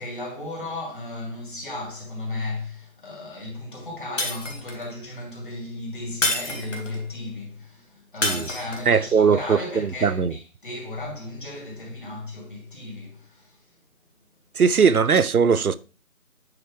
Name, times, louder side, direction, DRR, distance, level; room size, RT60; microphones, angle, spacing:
voice 1, 0.0-13.6, left 2 dB, 35° left, 2.5 m, -35 dB
Shatter, 4.2-4.9 6.2-7.0 8.2-9.0, left 2 dB, 55° left, 1.7 m, -27 dB
voice 2, 8.9-10.3 14.6-15.8, right 6 dB, 90° right, 0.7 m, -20 dB
8.6 x 4.7 x 3.2 m
figure-of-eight pair, 165°, 43 cm